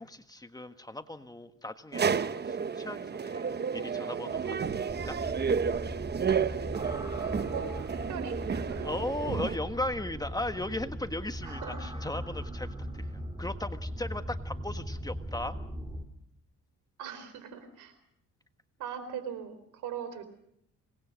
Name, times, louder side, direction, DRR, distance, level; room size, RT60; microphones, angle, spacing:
voice 1, 0.0-2.1 2.5-3.5 3.7-4.7 5.1-5.2 8.8-12.7 13.4-15.5, left 1 dB, 10° left, 8 dB, 1.5 m, -37 dB
sound 1, 1.9-9.6, right 6 dB, 35° right, 1.0 m, -31 dB
sound 2, 4.9-16.0, equal, 15° right, 3.2 m, -39 dB
voice 2, 7.5-8.9 11.4-11.8 17.0-17.9 18.8-20.2, right 7 dB, 85° right, 11 dB, 4.2 m, -40 dB
26.5 x 19.5 x 6.3 m, 0.71 s
cardioid pair, 90°, 30 cm